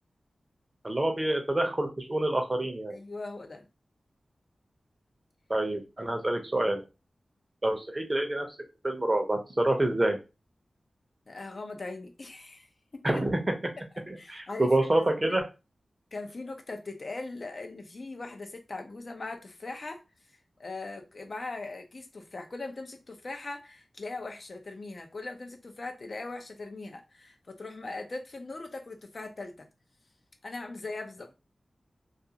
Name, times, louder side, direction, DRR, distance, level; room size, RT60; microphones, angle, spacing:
voice 1, 0.8-3.0 5.5-6.8 7.6-8.5 8.8-10.2 13.0-13.7 14.1-15.5, right 1 dB, 25° right, 0.6 m, -27 dB
voice 2, 2.9-3.7 11.3-12.7 12.9-13.2 14.2-14.7 15.2-15.4 16.1-20.0 20.6-29.7 30.4-31.3, left 3 dB, 50° left, 0.5 m, -40 dB
2.4 x 2.4 x 2.7 m
wide cardioid pair, 100°, 0 cm